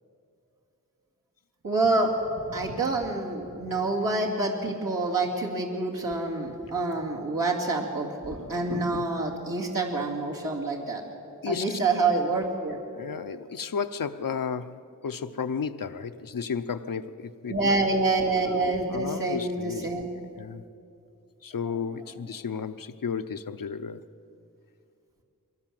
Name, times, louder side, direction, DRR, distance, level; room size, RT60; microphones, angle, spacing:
voice 1, 1.6-2.1 2.5-11.0 11.5-12.8 17.5-20.1, right 3 dB, 90° right, -3 dB, 2.5 m, -27 dB
voice 2, 11.4-11.8 13.0-14.8 15.0-17.6 18.9-20.0 20.4-20.6 21.4-24.0, left 6 dB, 90° left, 9 dB, 0.7 m, -33 dB
22.0 x 18.0 x 7.6 m, 2.6 s
wide cardioid pair, 70°, 32 cm